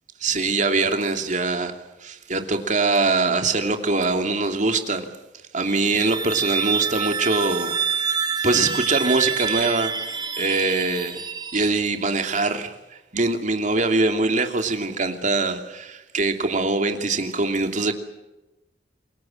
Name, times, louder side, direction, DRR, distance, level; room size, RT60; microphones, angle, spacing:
voice 1, 0.2-1.7 2.0-5.0 5.5-8.1 8.4-9.9 10.4-11.2 11.5-12.7 13.1-17.9, right 3 dB, 45° right, 6 dB, 2.9 m, -23 dB
sound 1, 5.5-12.2, right 6 dB, 25° right, 2.6 m, -27 dB
28.5 x 22.0 x 7.7 m, 1.0 s
head